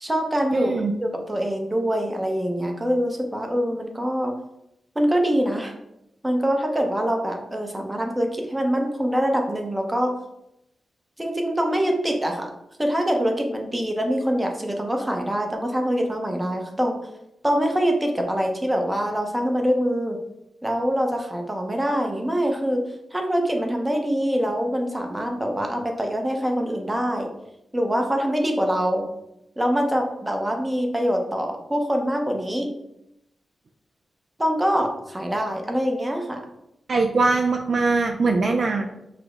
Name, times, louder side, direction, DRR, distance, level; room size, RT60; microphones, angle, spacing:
voice 1, 0.0-0.7 1.0-4.4 5.0-5.7 6.2-10.2 11.2-12.5 12.8-17.0 17.4-20.2 20.6-22.8 23.1-27.3 27.7-29.1 29.6-32.7 34.4-36.4, equal, 10° right, 2 dB, 0.7 m, -24 dB
voice 2, 0.5-0.9 36.9-38.9, right 3 dB, 45° right, 3 dB, 0.4 m, -21 dB
4.9 x 2.1 x 4.7 m, 0.85 s
wide cardioid pair, 130°, 0 cm